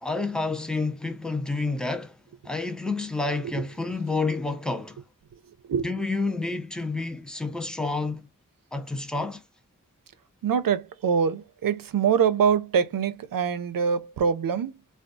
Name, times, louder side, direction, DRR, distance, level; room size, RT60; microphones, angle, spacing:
voice 1, 0.0-2.1 2.4-5.0 5.8-8.3 8.7-9.4, left 3 dB, ahead, 0.5 m, -29 dB
voice 2, 5.3-5.9 10.4-14.7, right 7 dB, 85° right, 0.5 m, -24 dB
3.4 x 2.3 x 2.6 m
wide cardioid pair, 75°, 33 cm